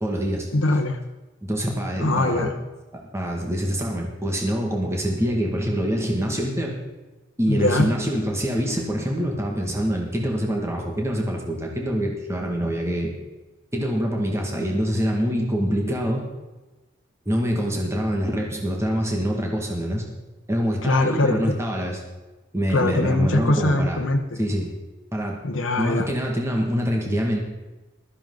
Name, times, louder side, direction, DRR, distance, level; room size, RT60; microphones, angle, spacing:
voice 1, 0.0-0.5 1.4-2.5 2.9-6.8 7.4-13.1 13.7-16.2 17.3-20.0 20.5-22.0 22.5-24.0 24.4-24.7 25.1-25.4 25.8-27.4, equal, 15° right, 0 dB, 2.0 m, -25 dB
voice 2, 0.5-1.0 2.0-2.5 7.5-7.9 20.8-21.6 22.7-24.4 25.4-26.1, left 2 dB, 75° left, 3 dB, 1.0 m, -22 dB
15.5 x 13.5 x 3.9 m, 1.1 s
head